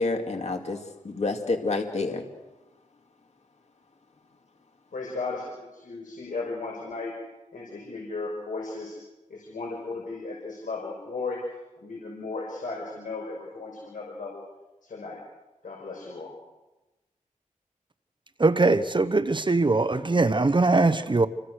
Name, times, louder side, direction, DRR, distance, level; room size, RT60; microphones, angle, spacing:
voice 1, 0.0-2.2, left 3 dB, 55° left, 4 dB, 2.6 m, -28 dB
voice 2, 4.9-7.1 7.5-9.0 9.3-11.4 11.8-14.4 14.8-15.2 15.6-16.3, left 3 dB, 75° left, -1 dB, 5.8 m, -35 dB
voice 3, 18.4-21.3, right 3 dB, 35° right, 12 dB, 1.1 m, -21 dB
29.0 x 25.0 x 6.5 m, 1.1 s
wide cardioid pair, 80°, 14 cm